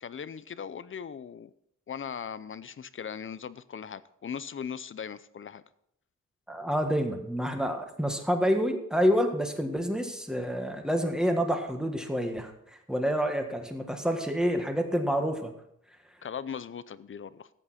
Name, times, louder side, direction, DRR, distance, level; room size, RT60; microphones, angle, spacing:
voice 1, 0.0-1.5 1.9-5.6 16.2-17.5, left 7 dB, 40° left, 15 dB, 0.6 m, -39 dB
voice 2, 6.5-12.5 12.9-15.5, equal, ahead, 4 dB, 1.5 m, -28 dB
14.0 x 8.6 x 4.2 m, 0.73 s
wide cardioid pair, 125°, 30 cm